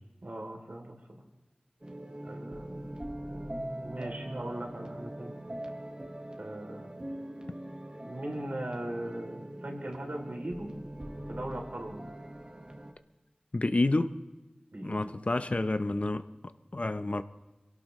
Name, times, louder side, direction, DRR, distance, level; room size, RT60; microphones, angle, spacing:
voice 1, 0.2-1.0 2.2-5.3 6.4-6.9 8.0-10.7 11.3-12.1 14.7-15.0, right 1 dB, 65° right, 1 dB, 3.1 m, -39 dB
sound 1, 1.8-12.9, right 1 dB, 30° right, 1.5 m, -42 dB
voice 2, 13.5-14.2 14.8-16.3 16.7-17.2, left 2 dB, 50° left, 11 dB, 0.7 m, -29 dB
22.5 x 17.0 x 3.2 m, 1.1 s
wide cardioid pair, 45°, 3 cm